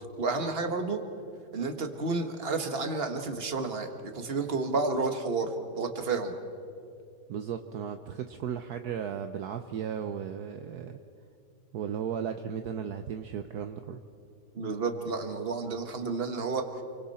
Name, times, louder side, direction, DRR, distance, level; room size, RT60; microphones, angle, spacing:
voice 1, 0.2-1.0 1.5-6.3 14.5-16.8, right 3 dB, 35° right, 5 dB, 1.7 m, -31 dB
voice 2, 7.3-11.0 11.7-14.0, right 8 dB, 65° right, 7 dB, 1.2 m, -35 dB
28.5 x 24.5 x 4.3 m, 2.6 s
omnidirectional pair, 1.9 m